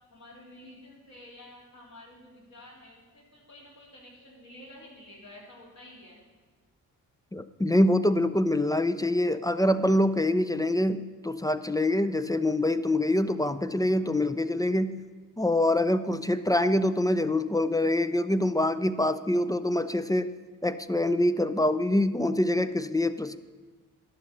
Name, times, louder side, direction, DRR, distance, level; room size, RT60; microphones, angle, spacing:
voice 1, 0.1-6.2, left 1 dB, 50° left, -3 dB, 3.2 m, -50 dB
voice 2, 7.3-15.0 15.4-20.3 20.6-23.4, left 1 dB, 10° left, 13 dB, 0.4 m, -25 dB
11.5 x 5.4 x 6.6 m, 1.3 s
supercardioid pair, 50°, 37 cm